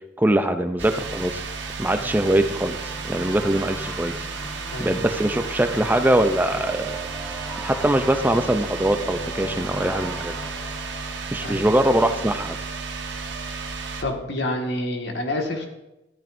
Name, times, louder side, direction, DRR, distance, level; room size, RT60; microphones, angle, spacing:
voice 1, 0.2-1.4 1.8-4.1 4.8-7.0 7.6-10.3 11.3-12.5, right 1 dB, 10° right, 8 dB, 0.5 m, -22 dB
sound 1, 0.8-14.0, right 4 dB, 70° right, 1.2 m, -33 dB
sound 2, 2.1-12.4, right 1 dB, 10° left, 2.4 m, -39 dB
voice 2, 14.0-15.7, left 1 dB, 65° left, 1 dB, 1.7 m, -28 dB
13.0 x 12.0 x 2.6 m, 0.97 s
head